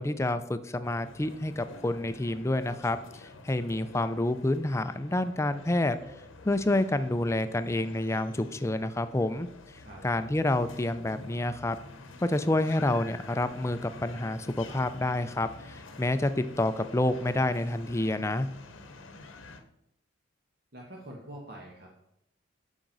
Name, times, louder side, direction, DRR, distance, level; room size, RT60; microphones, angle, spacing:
voice 1, 0.0-6.0 6.4-9.5 10.0-11.8 12.2-18.5, left 1 dB, 15° left, 11 dB, 0.4 m, -28 dB
sound 1, 0.8-19.6, left 3 dB, 85° left, 0.9 m, -48 dB
voice 2, 20.7-22.0, right 1 dB, 55° right, -1 dB, 1.2 m, -45 dB
8.7 x 6.1 x 4.0 m, 0.81 s
head